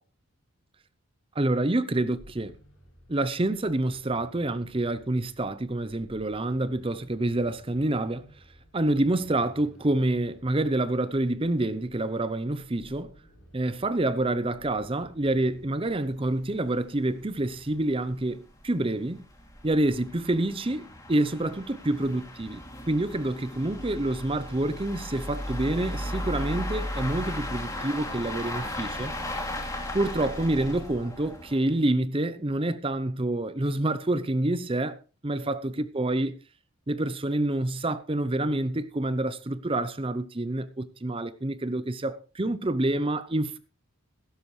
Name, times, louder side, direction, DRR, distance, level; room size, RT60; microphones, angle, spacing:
voice 1, 1.3-2.5 3.1-8.3 8.7-13.1 13.5-19.2 19.6-29.1 29.9-36.4 36.9-43.6, right 1 dB, 25° right, 0.6 m, -27 dB
sound 1, 2.0-17.9, equal, 55° left, 6.6 m, -55 dB
sound 2, 15.3-15.4 15.7-15.8 16.2-16.3 16.7-16.8 17.4-31.8, left 1 dB, 15° left, 2.6 m, -36 dB
16.0 x 12.5 x 3.2 m
head